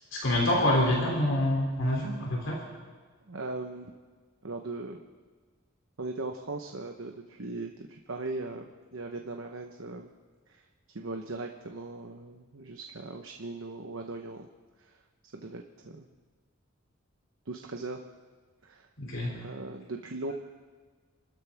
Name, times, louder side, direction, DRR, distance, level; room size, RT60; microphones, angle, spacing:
voice 1, 0.1-2.6 19.0-19.4, left 1 dB, 65° left, -2 dB, 3.1 m, -26 dB
voice 2, 3.3-3.9 4.4-5.0 6.0-10.1 10.5-10.6 10.9-14.5 14.8-15.0 15.3-16.1 17.5-18.0 18.6-18.9 19.3-20.3, right 2 dB, 70° right, 3 dB, 1.0 m, -39 dB
29.5 x 13.0 x 3.5 m, 1.5 s
head